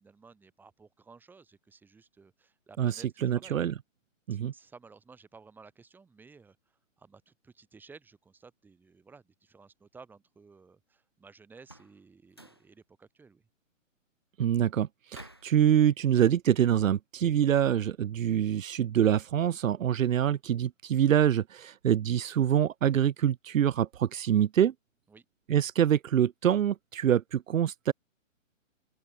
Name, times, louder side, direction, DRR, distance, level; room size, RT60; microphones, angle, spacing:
voice 1, 0.0-3.6 4.3-13.5 25.1-25.2, right 4 dB, 5° right, 5.0 m, -55 dB
voice 2, 3.2-3.7 4.3-4.5 14.4-24.7 25.5-27.9, right 10 dB, 85° right, 0.8 m, -25 dB
sound 1, 11.6-12.0 12.3-12.7 15.1-15.6, right 1 dB, 20° left, 0.4 m, -51 dB
open air
hypercardioid pair, 170°, 39 cm